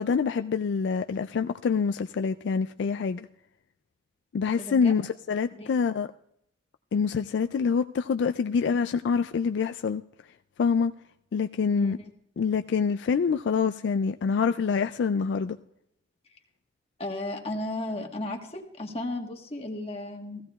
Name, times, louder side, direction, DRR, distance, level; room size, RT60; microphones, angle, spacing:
voice 1, 0.0-3.3 4.3-6.1 6.9-10.0 10.6-10.9 11.3-12.0 12.4-15.6, left 5 dB, 70° left, 0.3 m, -26 dB
voice 2, 4.6-4.9 5.5-5.8 11.8-12.1 17.0-20.4, left 1 dB, 30° left, 1.4 m, -34 dB
16.5 x 15.5 x 2.3 m
head